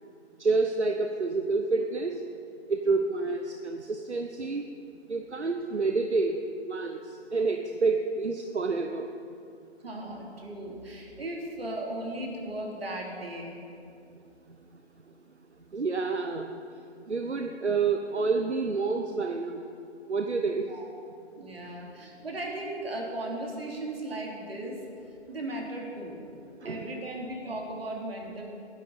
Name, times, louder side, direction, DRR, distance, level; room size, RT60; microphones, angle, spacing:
voice 1, 0.4-2.3 2.7-4.6 5.1-9.1 15.7-16.6 17.1-19.6 20.1-20.7 26.6-26.9, right 4 dB, 85° right, 5 dB, 1.0 m, -28 dB
voice 2, 9.8-13.5 20.7-20.8 21.4-24.8 25.3-26.2 26.6-28.4, right 1 dB, 60° right, -1 dB, 3.4 m, -36 dB
20.5 x 10.5 x 4.2 m, 2.5 s
figure-of-eight pair, 140°, 33 cm